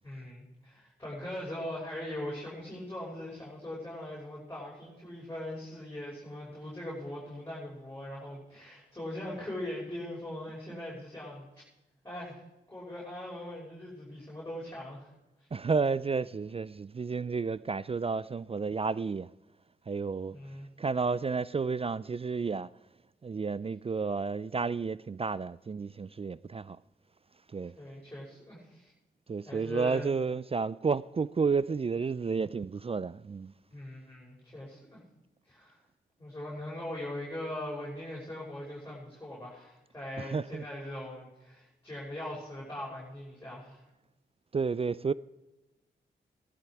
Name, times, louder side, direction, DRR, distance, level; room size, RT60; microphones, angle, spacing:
voice 1, 0.0-11.4 12.0-12.4 12.7-15.1 15.4-15.5 20.3-20.7 27.7-28.9 29.4-30.1 33.7-35.0 35.4-35.8 36.2-43.8, left 1 dB, 15° left, 5.8 m, -41 dB
voice 2, 15.5-19.3 19.9-20.4 20.8-22.7 23.2-26.8 27.5-27.7 29.3-33.5 40.2-40.6 44.5-45.1, right 5 dB, 30° right, 0.4 m, -31 dB
15.5 x 12.0 x 4.8 m
supercardioid pair, 45°, 20 cm